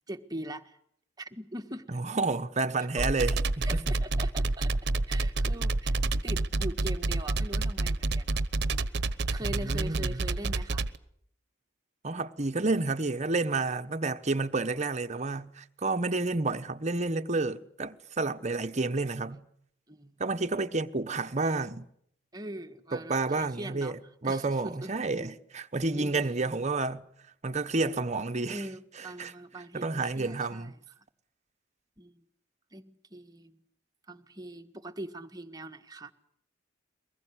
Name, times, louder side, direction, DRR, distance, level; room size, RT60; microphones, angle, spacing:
voice 1, 0.1-0.8 1.2-1.9 2.8-3.1 3.6-8.4 9.3-10.8 19.9-20.2 22.3-24.0 24.2-24.9 25.2-25.3 25.9-26.5 28.5-31.1 32.0-32.2 32.7-33.6 34.1-36.1, right 1 dB, 20° right, 1.6 m, -42 dB
voice 2, 1.9-4.0 9.6-10.2 12.0-19.4 20.2-21.9 22.9-27.1 27.4-28.6 29.2-29.3 29.7-30.7, right 3 dB, 40° right, 1.1 m, -30 dB
sound 1, 3.0-11.0, right 2 dB, 60° right, 1.0 m, -28 dB
23.5 x 20.5 x 9.9 m
head